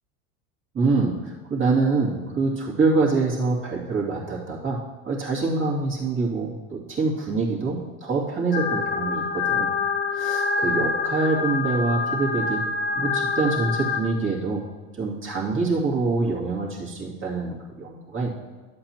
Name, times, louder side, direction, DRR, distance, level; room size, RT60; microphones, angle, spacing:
voice 1, 0.7-4.8 5.0-9.7 10.1-12.6 12.9-14.6 15.0-18.3, right 3 dB, 30° right, -4 dB, 2.4 m, -25 dB
sound 1, 8.5-14.0, left 5 dB, 30° left, 1.0 m, -26 dB
11.5 x 7.7 x 3.0 m, 1.3 s
supercardioid pair, 110°, 41 cm